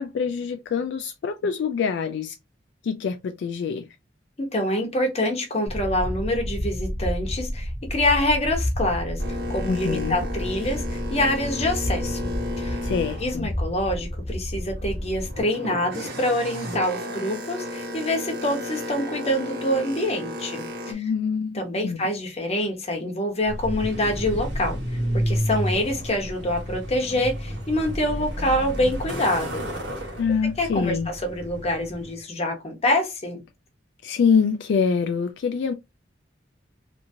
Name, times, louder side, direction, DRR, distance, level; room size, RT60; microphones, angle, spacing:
voice 1, 0.0-2.4 2.8-3.9 9.7-10.3 12.8-13.5 20.9-22.0 30.2-31.1 34.0-35.7, left 6 dB, 65° left, 0.3 m, -25 dB
voice 2, 4.4-12.2 12.6-12.8 13.2-21.1 21.5-24.8 25.1-29.7 30.6-33.4, left 1 dB, 35° left, 0.9 m, -26 dB
sound 1, 5.7-15.4, equal, 15° left, 0.6 m, -30 dB
Boat Water vehicle, 9.2-14.2 14.6-20.9, left 1 dB, 60° right, 1.0 m, -34 dB
Truck, 23.4-32.2, equal, 80° right, 1.1 m, -30 dB
2.8 x 2.5 x 2.6 m
head